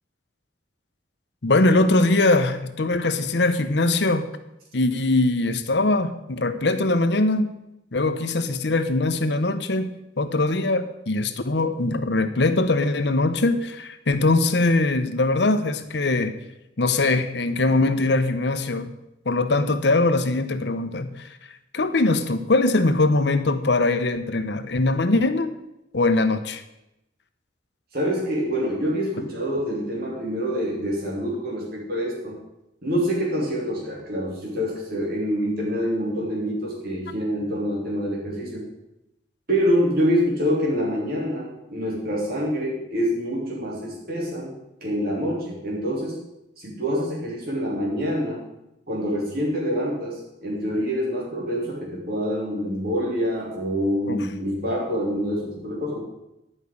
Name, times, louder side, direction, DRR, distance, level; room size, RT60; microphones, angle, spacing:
voice 1, 1.4-4.3 4.7-7.5 7.9-9.9 10.2-16.3 16.8-18.9 19.3-21.1 21.7-25.5 25.9-26.6 54.1-54.2, left 2 dB, 70° left, 9 dB, 0.9 m, -21 dB
voice 2, 27.9-32.4 32.8-38.6 39.5-44.5 44.8-46.2 46.6-48.4 48.9-56.0, equal, 55° right, -3 dB, 3.1 m, -26 dB
11.0 x 5.4 x 8.4 m, 0.90 s
head